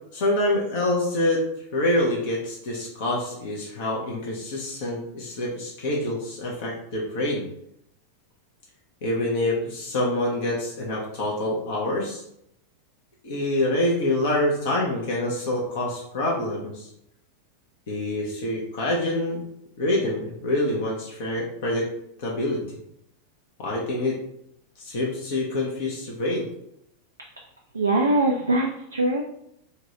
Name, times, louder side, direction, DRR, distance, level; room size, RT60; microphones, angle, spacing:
voice 1, 0.1-1.4 1.7-7.4 9.0-12.2 13.2-16.9 17.9-19.4 19.8-21.9 22.2-22.6 23.6-24.2 24.8-26.4, left 1 dB, 50° left, -3 dB, 0.7 m, -26 dB
voice 2, 27.7-29.2, right 2 dB, 80° right, 0 dB, 0.3 m, -22 dB
2.8 x 2.2 x 2.9 m, 0.76 s
figure-of-eight pair, 90°, 0 cm